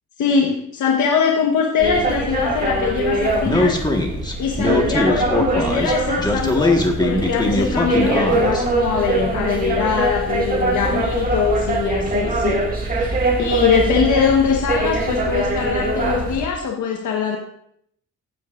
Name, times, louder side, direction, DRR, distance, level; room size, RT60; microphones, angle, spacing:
voice 1, 0.2-3.8 4.4-12.6 12.9-17.4, left 6 dB, 75° left, 0 dB, 1.4 m, -22 dB
sound 1, 1.8-16.4, right 2 dB, 30° right, 2.3 m, -23 dB
Speech, 3.4-8.6, left 2 dB, 15° left, 1.7 m, -21 dB
15.5 x 9.3 x 2.6 m, 0.69 s
cardioid pair, 90°, 30 cm